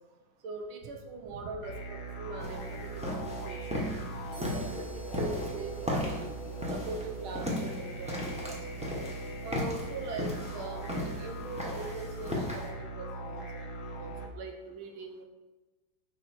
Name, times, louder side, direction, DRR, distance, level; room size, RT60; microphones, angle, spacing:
voice 1, 0.4-6.1 6.7-8.9 9.4-15.3, right 3 dB, 85° right, 4 dB, 1.8 m, -42 dB
sound 1, 1.6-14.3, right 2 dB, 90° left, 2.0 m, -40 dB
sound 2, 2.4-12.7, left 1 dB, 5° right, 1.0 m, -37 dB
sound 3, 4.3-8.1, right 2 dB, 55° right, 2.9 m, -57 dB
7.0 x 5.1 x 4.6 m, 1.1 s
omnidirectional pair, 2.2 m